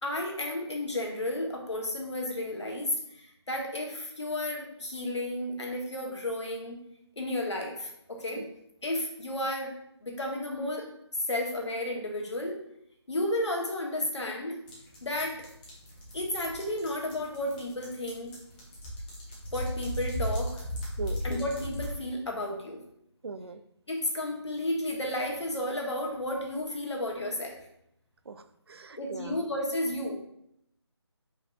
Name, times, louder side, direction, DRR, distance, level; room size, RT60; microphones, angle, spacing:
voice 1, 0.0-6.8 7.2-8.4 8.8-9.7 10.0-10.9 11.3-12.6 13.1-14.6 15.0-15.5 16.1-18.4 19.5-20.6 21.2-22.8 23.9-27.6 29.0-30.2, left 1 dB, 80° left, 0 dB, 1.5 m, -32 dB
sound 1, 14.7-21.9, equal, 20° left, 1.0 m, -36 dB
voice 2, 23.2-23.6 28.3-29.4, right 4 dB, 60° right, 10 dB, 0.4 m, -40 dB
5.3 x 3.4 x 2.6 m, 0.75 s
figure-of-eight pair, 160°, 15 cm